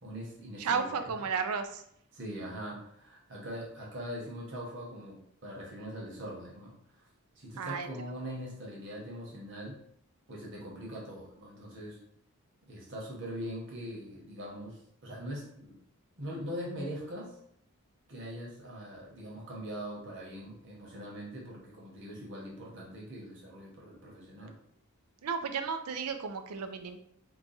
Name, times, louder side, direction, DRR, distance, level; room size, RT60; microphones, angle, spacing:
voice 1, 0.0-1.1 2.1-7.1 7.4-9.7 10.3-12.0 12.7-15.8 16.2-17.4 18.1-24.5, equal, 55° right, -3 dB, 1.1 m, -42 dB
voice 2, 0.6-1.8 7.6-7.9 25.2-27.0, right 5 dB, 90° right, 7 dB, 0.4 m, -33 dB
3.0 x 2.3 x 4.0 m, 0.69 s
head